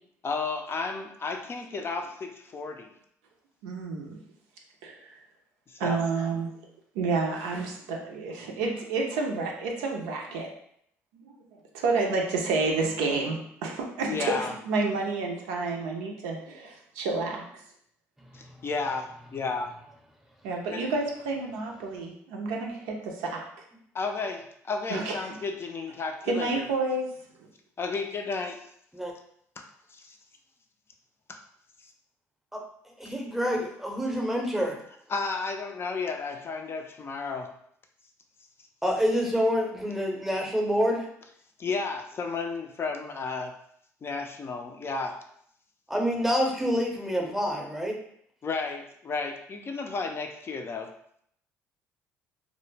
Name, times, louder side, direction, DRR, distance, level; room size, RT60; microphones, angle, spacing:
voice 1, 0.2-2.9 5.7-6.1 14.0-14.5 18.3-19.7 20.7-20.9 23.9-26.7 27.8-28.6 29.6-29.7 29.9-30.2 31.3-31.4 35.1-37.5 41.6-43.5 44.0-45.2 48.4-50.9, left 4 dB, 35° left, 4 dB, 0.4 m, -33 dB
voice 2, 3.6-4.2 4.8-4.9 5.8-6.5 7.0-10.5 11.3-11.4 11.7-17.4 20.4-23.4 24.9-25.1 26.3-27.1, right 3 dB, 80° right, 0 dB, 0.4 m, -29 dB
voice 3, 33.0-34.8 38.8-41.1 45.9-48.0, equal, 5° right, 0 dB, 0.7 m, -27 dB
2.1 x 2.0 x 3.1 m, 0.68 s
hypercardioid pair, 65°, 7 cm